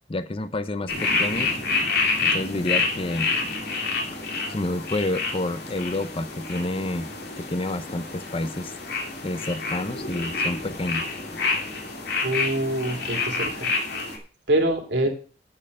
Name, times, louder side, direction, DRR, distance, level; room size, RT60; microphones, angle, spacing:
voice 1, 0.1-1.6 2.2-3.3 4.5-7.1 7.4-8.7 9.2-11.1, left 1 dB, 30° left, 12 dB, 0.6 m, -29 dB
sound 1, 0.9-14.2, left 3 dB, 60° left, 2.5 m, -28 dB
voice 2, 12.2-13.7 14.5-15.1, right 1 dB, 65° right, 2 dB, 3.1 m, -25 dB
9.1 x 8.7 x 5.4 m, 0.38 s
head